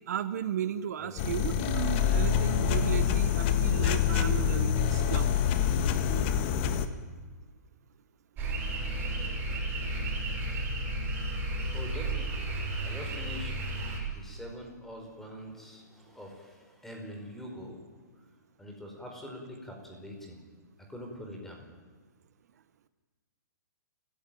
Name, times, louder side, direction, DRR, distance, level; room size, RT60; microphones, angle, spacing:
voice 1, 0.1-5.3, right 9 dB, 60° right, 13 dB, 1.1 m, -34 dB
voice 2, 1.0-1.3 11.7-12.6 12.8-13.5 14.1-17.8 18.6-20.4 20.9-21.7, equal, 5° left, 1 dB, 4.8 m, -44 dB
sound 1, 1.2-6.9, left 8 dB, 35° left, 1.6 m, -26 dB
sound 2, 8.4-14.0, right 2 dB, 20° right, 6.4 m, -33 dB
29.5 x 16.0 x 9.3 m, 1.4 s
hypercardioid pair, 155°, 10 cm